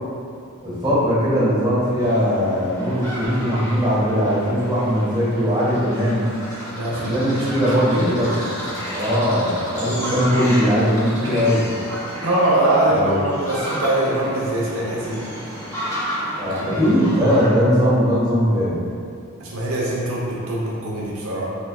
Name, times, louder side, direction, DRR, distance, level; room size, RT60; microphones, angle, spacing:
voice 1, 0.6-6.3 6.9-8.3 8.6-11.6 12.9-13.3 16.4-18.8, equal, 20° right, -10 dB, 1.2 m, -20 dB
sound 1, 2.0-17.5, equal, 15° left, 1.0 m, -32 dB
voice 2, 6.7-8.1 9.8-10.1 11.2-11.5 12.2-15.3 16.5-16.8 19.4-21.5, right 1 dB, 80° right, -5 dB, 0.7 m, -23 dB
4.3 x 4.0 x 2.3 m, 2.4 s
head